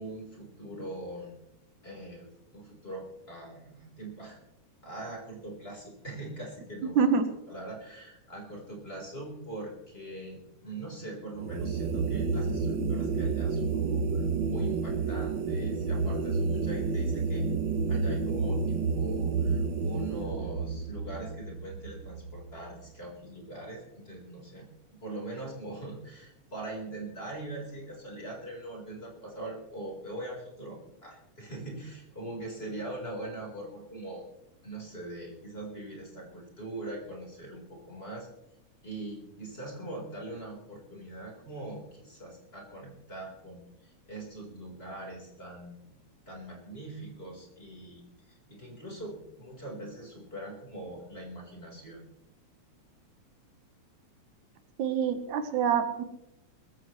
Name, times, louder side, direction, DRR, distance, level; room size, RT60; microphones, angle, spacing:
voice 1, 0.0-1.4 1.8-4.4 4.8-7.2 7.5-17.5 17.9-34.3 34.6-38.3 38.8-45.8 46.3-52.0, right 2 dB, 20° left, -2 dB, 4.4 m, -42 dB
voice 2, 7.0-7.3 54.8-56.0, right 6 dB, 90° right, 8 dB, 2.6 m, -26 dB
sound 1, 11.4-22.7, right 4 dB, 75° right, 1.0 m, -30 dB
21.0 x 15.0 x 3.2 m, 0.88 s
omnidirectional pair, 3.3 m